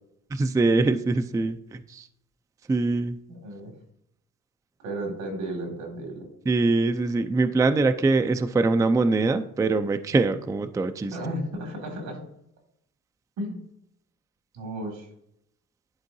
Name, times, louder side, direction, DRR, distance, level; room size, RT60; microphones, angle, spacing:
voice 1, 0.3-2.1 2.7-3.2 6.5-11.2, right 3 dB, 10° right, 10 dB, 0.3 m, -23 dB
voice 2, 3.3-3.7 4.8-6.3 11.1-12.2 13.4-13.6 14.5-15.1, right 1 dB, 80° right, 1 dB, 2.3 m, -33 dB
11.0 x 3.7 x 2.6 m, 0.75 s
cardioid pair, 90°, 30 cm